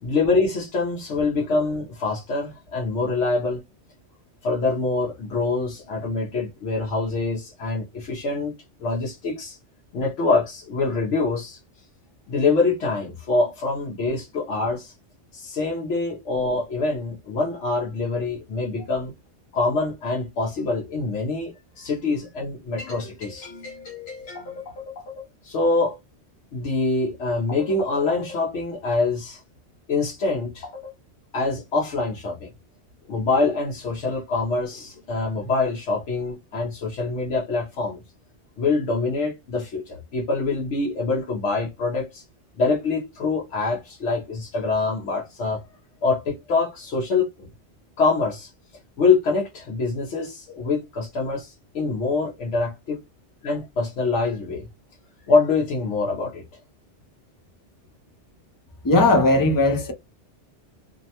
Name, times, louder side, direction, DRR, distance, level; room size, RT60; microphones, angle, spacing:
voice 1, 0.0-3.6 4.4-8.5 8.8-9.6 9.9-11.6 12.3-14.9 15.3-19.1 19.5-25.9 26.5-29.4 29.9-30.9 31.3-32.5 33.1-38.0 38.6-42.2 42.6-45.6 46.0-47.5 48.0-48.5 49.0-53.0 53.4-54.7 55.3-56.4, left 3 dB, 85° left, 1.0 m, -25 dB
voice 2, 58.8-59.9, left 2 dB, 30° left, 0.4 m, -18 dB
2.6 x 2.1 x 2.7 m
omnidirectional pair, 1.2 m